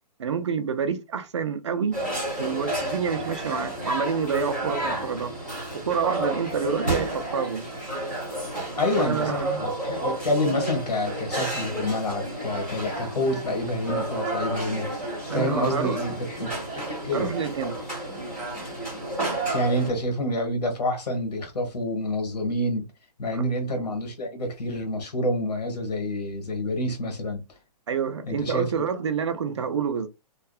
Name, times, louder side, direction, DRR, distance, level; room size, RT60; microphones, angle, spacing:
voice 1, 0.2-2.0 2.4-5.3 5.7-7.6 9.0-9.7 15.3-16.0 17.1-17.8 23.3-23.4 27.9-30.1, right 6 dB, 45° right, 0.4 m, -28 dB
sound 1, 1.9-19.9, right 1 dB, 5° left, 1.0 m, -31 dB
voice 2, 8.7-14.9 15.3-17.3 19.5-22.8 23.2-27.4 28.3-28.8, left 1 dB, 75° left, 1.3 m, -28 dB
2.7 x 2.3 x 2.2 m
hypercardioid pair, 175°, 20 cm